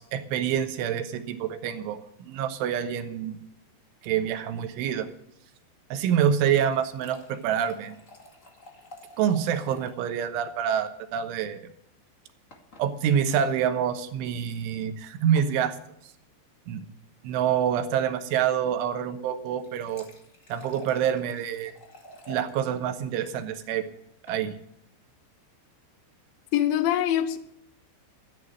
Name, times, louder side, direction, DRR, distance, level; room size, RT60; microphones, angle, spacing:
voice 1, 0.0-3.4 4.0-5.1 5.9-8.0 9.2-11.7 12.8-15.8 16.7-16.8 17.2-20.1 20.5-21.7 22.3-23.8 24.3-24.5, right 9 dB, 90° right, 8 dB, 3.6 m, -27 dB
sound 1, 6.4-10.1 10.3-10.4 10.7-10.8 12.5-12.9 13.8-14.0 15.3-15.6 19.4-22.5 24.0-24.4, left 1 dB, 65° left, 0.7 m, -49 dB
voice 2, 26.5-27.4, left 11 dB, 80° left, 12 dB, 2.2 m, -23 dB
13.0 x 10.5 x 6.4 m, 0.73 s
omnidirectional pair, 5.3 m